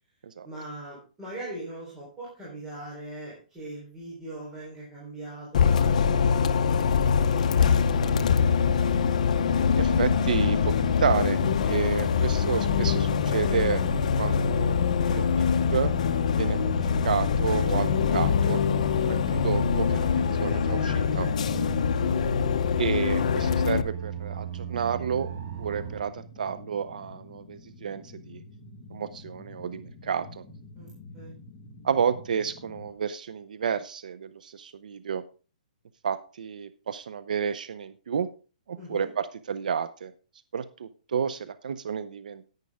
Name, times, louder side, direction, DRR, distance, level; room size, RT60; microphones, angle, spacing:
voice 1, 0.4-8.2 21.6-21.8 30.8-31.3 38.8-39.1, right 1 dB, 10° right, -6 dB, 3.9 m, -41 dB
Bus, 5.5-23.8, left 7 dB, 60° left, 0.8 m, -24 dB
sound 1, 7.5-26.0, right 9 dB, 45° right, 1.8 m, -36 dB
voice 2, 9.7-15.9 16.4-18.6 19.0-21.3 22.8-25.3 25.6-28.4 28.9-30.4 31.8-35.2 36.0-38.3 38.7-40.1 40.5-42.5, right 7 dB, 70° right, 14 dB, 0.7 m, -31 dB
sound 2, 19.1-32.9, left 2 dB, 15° left, 1.6 m, -47 dB
10.5 x 9.7 x 3.6 m, 0.36 s
hypercardioid pair, 165°, 4 cm